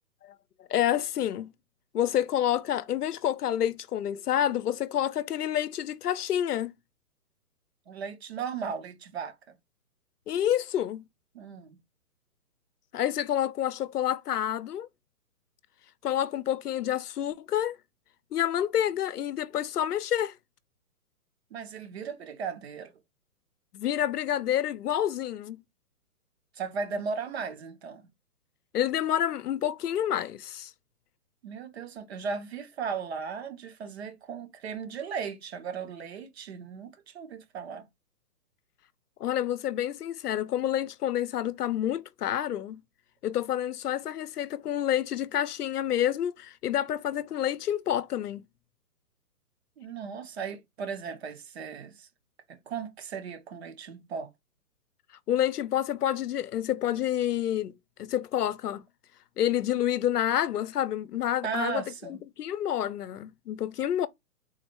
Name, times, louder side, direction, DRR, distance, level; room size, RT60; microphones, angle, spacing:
voice 1, 0.7-1.5 1.9-6.7 10.3-11.0 12.9-14.9 16.0-17.8 18.3-20.4 23.7-25.6 28.7-30.7 39.2-42.8 43.2-48.4 55.3-58.8 59.4-64.1, left 11 dB, 90° left, 0.6 m, -28 dB
voice 2, 7.9-9.6 11.3-11.8 21.5-22.9 26.5-28.0 31.4-37.9 49.8-52.1 52.5-54.3 61.4-62.2, right 6 dB, 45° right, 0.8 m, -36 dB
3.9 x 2.1 x 3.0 m
hypercardioid pair, 150°, 45 cm